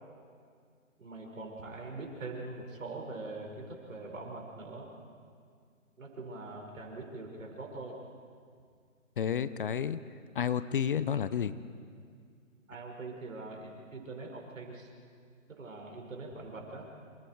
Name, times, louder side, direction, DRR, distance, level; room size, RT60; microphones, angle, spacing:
voice 1, 1.0-4.9 6.0-8.0 12.7-14.9 15.5-16.9, right 3 dB, 75° right, 1 dB, 5.9 m, -43 dB
voice 2, 9.2-10.0 10.3-11.5, left 8 dB, 40° left, 15 dB, 0.7 m, -30 dB
27.5 x 27.0 x 4.7 m, 2.2 s
hypercardioid pair, 145°, 40 cm